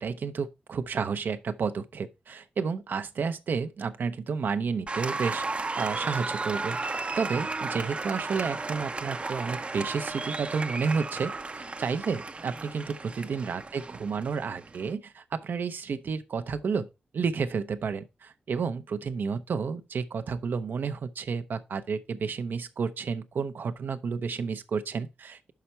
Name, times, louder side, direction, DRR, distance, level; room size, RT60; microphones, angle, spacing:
voice 1, 0.0-6.8 7.1-16.9 17.1-25.5, right 5 dB, 70° right, 0.7 m, -31 dB
Applause, 4.9-14.9, right 3 dB, 35° right, 0.6 m, -34 dB
5.8 x 5.7 x 4.3 m
cardioid pair, 65°, 3 cm